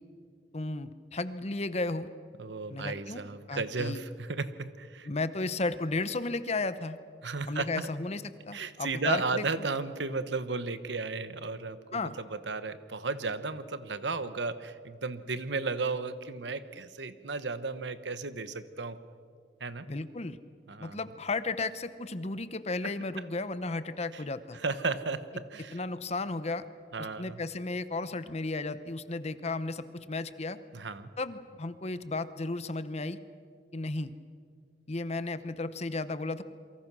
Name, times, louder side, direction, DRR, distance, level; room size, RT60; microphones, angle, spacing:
voice 1, 0.5-2.1 2.7-3.2 3.5-4.0 5.1-7.0 7.5-9.7 11.9-12.1 19.9-20.4 20.8-24.6 25.7-26.6 27.2-30.6 31.2-33.2 33.7-34.1 34.9-36.4, left 3 dB, 35° left, 13 dB, 0.9 m, -34 dB
voice 2, 2.4-5.1 7.2-7.9 8.5-19.0 19.6-19.9 20.7-21.0 22.8-22.9 24.1-24.2 24.6-25.8 26.9-27.4 30.7-31.1, right 4 dB, 75° right, 12 dB, 1.1 m, -34 dB
28.5 x 23.5 x 6.2 m, 2.2 s
head